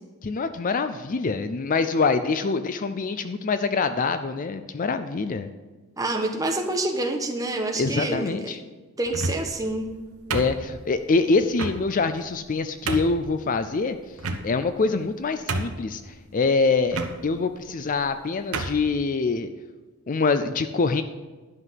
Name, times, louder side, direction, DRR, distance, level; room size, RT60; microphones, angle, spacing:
voice 1, 0.2-5.5 7.8-8.6 10.3-14.0 14.4-19.5 20.1-21.0, left 4 dB, 40° left, 10 dB, 0.4 m, -25 dB
voice 2, 6.0-8.5 9.0-9.9, right 2 dB, 15° right, 3 dB, 1.2 m, -27 dB
sound 1, 9.1-9.6 10.3-11.0 11.6-11.8 12.4-12.5 12.9-13.2 14.2-14.7 15.1-15.2 15.5-16.0 16.9-17.1 18.0-18.1 18.5-18.8, right 3 dB, 80° right, 1.0 m, -29 dB
11.0 x 5.9 x 7.5 m, 1.3 s
head